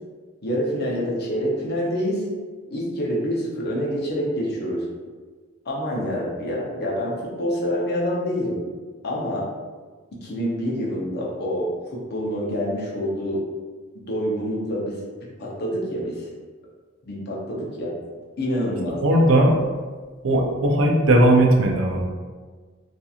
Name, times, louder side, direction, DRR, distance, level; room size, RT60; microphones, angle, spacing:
voice 1, 0.4-2.2 2.7-4.8 5.6-8.6 9.0-9.5 10.2-13.4 14.1-15.0 15.4-16.3 17.1-17.9 18.4-19.4, equal, 50° left, -4 dB, 0.6 m, -26 dB
voice 2, 18.9-19.5 20.2-22.0, right 1 dB, 60° right, 1 dB, 0.5 m, -17 dB
2.8 x 2.5 x 2.4 m, 1.4 s
head